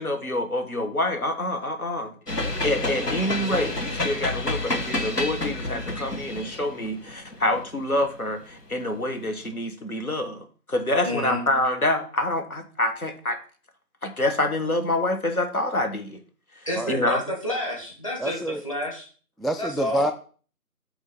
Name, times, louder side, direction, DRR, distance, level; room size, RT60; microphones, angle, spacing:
voice 1, 0.0-2.1 2.6-13.4 14.0-16.2 16.9-17.2, left 1 dB, 65° left, 5 dB, 1.5 m, -26 dB
sound 1, 2.3-8.6, left 2 dB, 90° left, 2.0 m, -29 dB
voice 2, 11.0-11.4 16.7-19.1 19.6-20.1, left 1 dB, 20° left, -2 dB, 1.7 m, -30 dB
voice 3, 18.2-18.6 19.4-20.1, equal, ahead, 5 dB, 0.4 m, -26 dB
8.1 x 3.7 x 5.6 m, 0.41 s
figure-of-eight pair, 170°, 46 cm